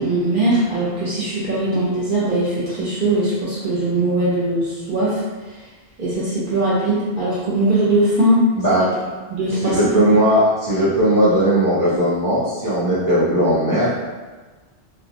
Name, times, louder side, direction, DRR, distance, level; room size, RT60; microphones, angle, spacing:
voice 1, 0.0-5.2 6.0-8.9 9.3-10.1, right 1 dB, 50° right, -9 dB, 1.2 m, -20 dB
voice 2, 8.5-8.9 9.5-13.9, equal, 20° left, -11 dB, 0.6 m, -18 dB
2.6 x 2.1 x 2.8 m, 1.3 s
omnidirectional pair, 1.1 m